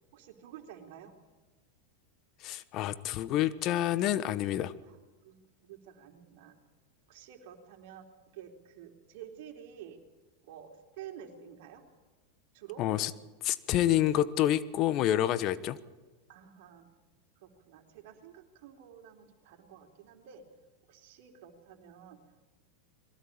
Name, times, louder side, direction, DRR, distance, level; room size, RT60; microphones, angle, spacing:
voice 1, 0.1-1.1 4.9-5.0 5.2-6.6 7.1-8.1 8.3-10.0 10.4-11.8 12.5-12.8 16.3-16.9 17.4-20.4 20.9-22.2, right 9 dB, 65° right, 4 dB, 3.8 m, -50 dB
voice 2, 2.4-4.7 12.8-13.1 13.4-15.8, left 12 dB, 45° left, 16 dB, 1.2 m, -28 dB
22.0 x 16.0 x 8.7 m, 1.2 s
hypercardioid pair, 105°, 0 cm